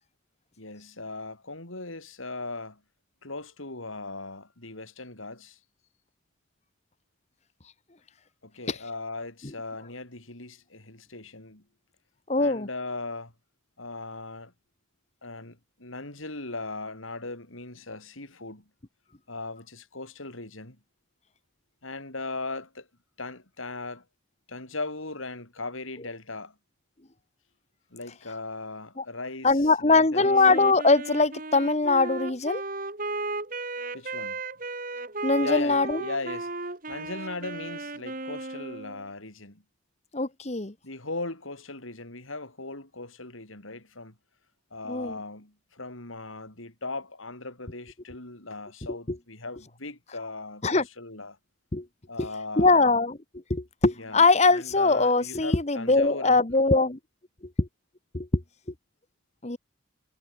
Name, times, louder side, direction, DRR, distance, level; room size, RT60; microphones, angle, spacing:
voice 1, 0.6-2.8 3.2-5.6 8.4-11.6 12.4-13.3 13.8-14.5 15.2-18.7 19.3-20.8 21.8-22.9 23.2-24.0 24.5-26.5 27.9-30.4 33.9-34.4 35.4-39.6 40.8-44.1 44.7-51.4 52.1-53.0 54.0-56.4, left 3 dB, 85° left, 6.3 m, -38 dB
voice 2, 12.3-12.7 29.0-29.1 29.4-32.6 35.2-36.0 40.1-40.7 44.9-45.2 49.1-49.2 50.6-50.8 51.7-51.9 52.2-52.3 52.6-53.2 53.5-57.0 57.6-57.7 58.1-58.4 59.4-59.6, left 3 dB, 35° left, 1.1 m, -22 dB
Wind instrument woodwind instrument, 30.2-39.1, right 3 dB, 45° right, 2.4 m, -35 dB
head